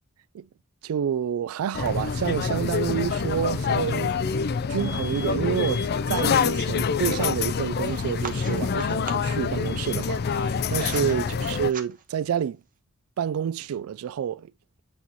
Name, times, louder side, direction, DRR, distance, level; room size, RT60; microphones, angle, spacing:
voice 1, 0.8-4.4 4.7-12.6 13.2-14.5, right 8 dB, 75° right, 0.3 m, -28 dB
sound 1, 1.7-11.7, left 5 dB, 50° left, 0.4 m, -26 dB
sound 2, 7.8-9.4 10.2-11.2 11.6-12.2, right 6 dB, 40° right, 1.0 m, -41 dB
8.4 x 3.1 x 4.0 m
head